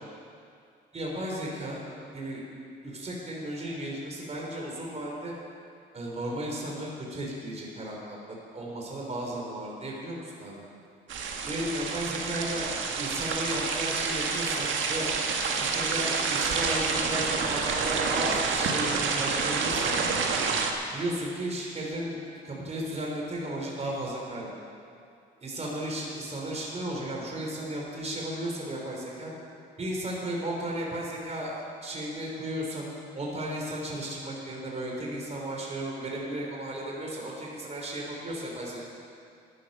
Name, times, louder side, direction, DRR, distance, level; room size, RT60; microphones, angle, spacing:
voice 1, 0.9-1.8 2.1-2.4 2.8-5.3 5.9-10.6 11.4-15.1 15.5-20.1 20.9-22.2 22.4-24.5 25.4-29.3 29.8-32.9 33.1-38.8, right 1 dB, 35° right, -3 dB, 3.5 m, -34 dB
sound 1, 11.1-20.7, right 5 dB, 75° right, 1.5 m, -28 dB
14.5 x 11.5 x 5.4 m, 2.4 s
cardioid pair, 90°, 20 cm